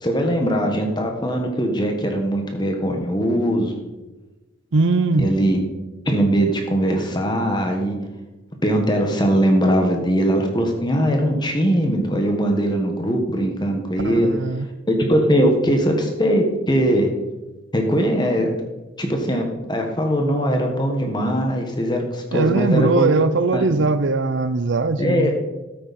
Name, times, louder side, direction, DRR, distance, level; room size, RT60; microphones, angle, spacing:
voice 1, 0.0-3.7 5.2-5.6 6.0-8.0 8.6-14.3 14.9-17.1 17.7-18.5 19.0-23.1 23.5-23.7 25.0-25.3, equal, 20° left, 3 dB, 1.5 m, -20 dB
voice 2, 4.7-5.3 14.0-14.7 22.3-25.4, right 3 dB, 70° right, 13 dB, 0.6 m, -20 dB
13.0 x 9.0 x 4.3 m, 1.1 s
head